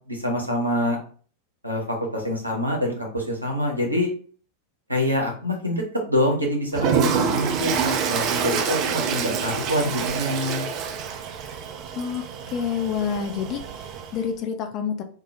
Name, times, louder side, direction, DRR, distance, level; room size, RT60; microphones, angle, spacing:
voice 1, 0.1-1.0 1.6-4.1 4.9-10.7, left 1 dB, 85° right, 0 dB, 0.7 m, -25 dB
Toilet flush, 6.7-14.2, right 6 dB, 40° right, 0.3 m, -27 dB
voice 2, 12.5-15.0, left 7 dB, 35° left, 6 dB, 0.4 m, -28 dB
2.2 x 2.0 x 2.8 m, 0.43 s
figure-of-eight pair, 90°, 0 cm